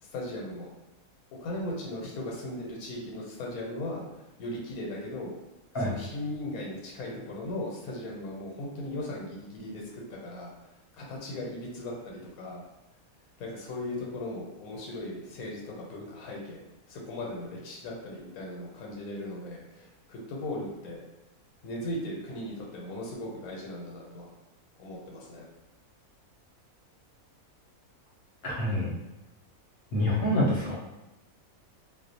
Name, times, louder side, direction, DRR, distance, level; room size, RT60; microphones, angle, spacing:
voice 1, 0.0-0.7 1.3-4.0 4.4-5.3 5.8-10.5 11.0-12.6 13.4-21.0 21.6-24.3 24.8-25.5, left 1 dB, 85° left, -2 dB, 1.1 m, -38 dB
voice 2, 28.4-28.9 29.9-30.8, left 1 dB, 55° left, -5 dB, 0.7 m, -26 dB
2.4 x 2.0 x 2.6 m, 1.0 s
omnidirectional pair, 1.5 m